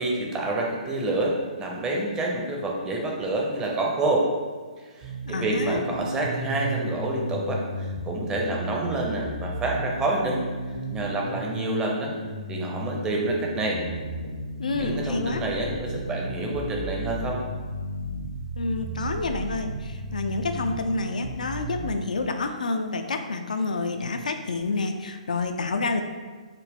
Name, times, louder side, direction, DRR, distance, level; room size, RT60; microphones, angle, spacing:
voice 1, 0.0-4.3 5.0-10.4 10.7-12.1 12.5-13.8 14.8-17.4, right 2 dB, 15° right, -1 dB, 0.6 m, -28 dB
sound 1, 5.0-21.9, right 1 dB, 45° right, 0.9 m, -34 dB
voice 2, 5.3-5.8 14.6-15.4 18.6-26.0, left 3 dB, 75° left, 6 dB, 0.3 m, -28 dB
4.1 x 2.0 x 3.4 m, 1.5 s
figure-of-eight pair, 130°, 4 cm